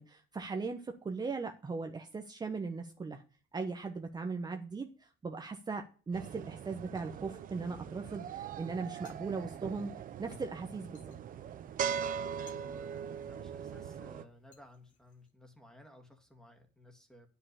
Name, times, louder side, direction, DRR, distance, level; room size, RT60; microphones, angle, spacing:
voice 1, 0.0-3.2 3.5-9.9 10.2-11.0, right 4 dB, 25° right, 4 dB, 1.1 m, -39 dB
sound 1, 6.1-14.2, right 8 dB, 55° right, 0.9 m, -41 dB
sound 2, 8.8-13.8 14.2-15.3, left 6 dB, 50° left, 2.1 m, -61 dB
voice 2, 12.3-17.3, left 1 dB, 5° left, 4 dB, 2.2 m, -57 dB
9.6 x 5.7 x 8.3 m, 0.38 s
cardioid pair, 110°, 17 cm